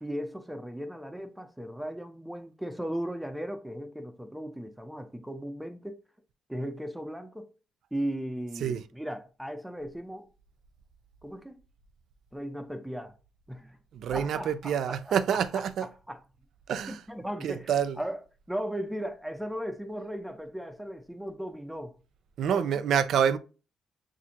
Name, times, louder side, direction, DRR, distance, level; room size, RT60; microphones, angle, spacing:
voice 1, 0.0-6.0 6.5-7.5 7.9-10.3 11.2-11.5 12.3-13.1 13.5-13.8 14.1-15.6 16.1-16.2 16.9-18.2 18.5-22.0 22.5-22.7, equal, 5° right, 0.5 m, -37 dB
voice 2, 13.9-15.9 16.7-17.0 17.4-18.0 22.4-23.4, right 8 dB, 70° right, 0.4 m, -27 dB
6.0 x 2.5 x 2.9 m
cardioid pair, 90°, 0 cm